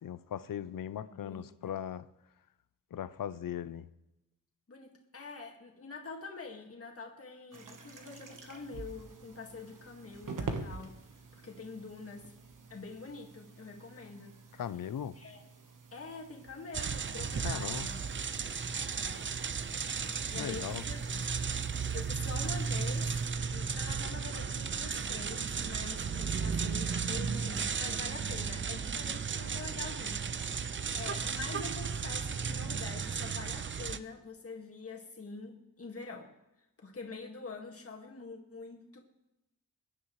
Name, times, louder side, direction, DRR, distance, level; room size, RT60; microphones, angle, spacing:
voice 1, 0.0-2.0 2.9-3.9 14.5-15.2 17.4-17.9 20.3-20.8, left 9 dB, 75° left, 0.6 m, -38 dB
voice 2, 1.1-1.7 4.7-11.0 11.3-12.3 12.7-14.4 15.2-15.4 15.9-18.0 18.4-18.5 18.9-19.3 20.3-21.4 21.9-23.1 23.4-30.3 30.9-36.3 36.8-39.0, left 4 dB, 45° left, 2.0 m, -45 dB
sound 1, 7.5-23.3, right 4 dB, 70° right, 1.3 m, -48 dB
sound 2, 16.7-34.0, right 6 dB, 35° right, 0.5 m, -34 dB
22.5 x 10.0 x 3.2 m
wide cardioid pair, 125°, 33 cm